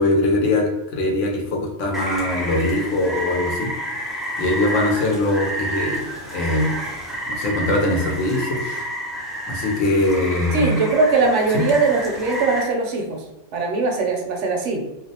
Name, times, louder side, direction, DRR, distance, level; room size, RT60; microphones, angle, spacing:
voice 1, 0.0-3.7 4.4-6.0 6.3-6.8 7.3-8.8 9.5-10.8 11.5-11.6, left 1 dB, 90° left, 0 dB, 1.0 m, -21 dB
Rain, 1.9-12.6, equal, ahead, 0.3 m, -30 dB
voice 2, 10.5-13.2 13.5-14.8, right 3 dB, 75° right, 2 dB, 0.9 m, -20 dB
2.6 x 2.0 x 2.7 m, 0.96 s
omnidirectional pair, 1.2 m